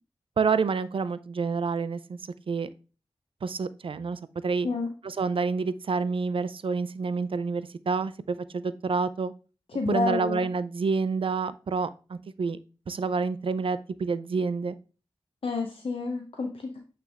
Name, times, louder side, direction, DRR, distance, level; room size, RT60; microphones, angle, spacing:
voice 1, 0.4-2.2 2.5-2.7 3.4-4.7 5.0-9.3 9.9-12.6 12.9-14.8, right 4 dB, 65° right, 15 dB, 0.4 m, -28 dB
voice 2, 9.7-10.4 15.4-16.8, left 3 dB, 70° left, 2 dB, 0.8 m, -29 dB
8.4 x 3.4 x 3.4 m, 0.36 s
cardioid pair, 55°, 10 cm